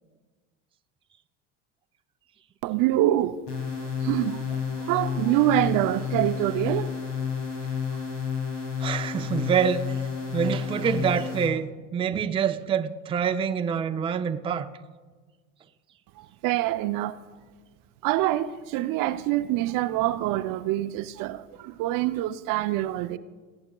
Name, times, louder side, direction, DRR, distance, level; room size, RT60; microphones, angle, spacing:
voice 1, 2.6-3.4 4.0-6.9 16.2-17.2 18.0-23.2, right 14 dB, 60° right, 0.6 m, -25 dB
sound 1, 3.5-11.5, left 6 dB, 85° left, 2.7 m, -31 dB
voice 2, 8.8-10.0 10.3-14.7, right 7 dB, 15° right, 0.4 m, -26 dB
20.0 x 8.6 x 2.3 m
supercardioid pair, 85°, 37 cm